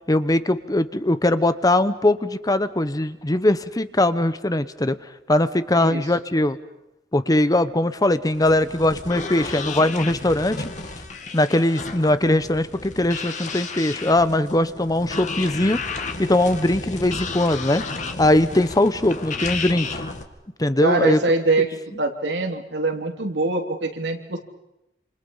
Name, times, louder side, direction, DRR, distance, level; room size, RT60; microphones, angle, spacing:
voice 1, 0.1-6.6 7.1-10.7 11.3-15.8 16.2-17.8 18.2-20.0 20.6-21.2, left 1 dB, 20° left, 13 dB, 0.9 m, -20 dB
sound 1, 8.3-20.2, left 3 dB, 45° left, 2.4 m, -32 dB
voice 2, 20.8-21.7 22.0-24.4, right 2 dB, 85° right, 3 dB, 3.3 m, -23 dB
28.0 x 27.5 x 5.6 m, 0.89 s
head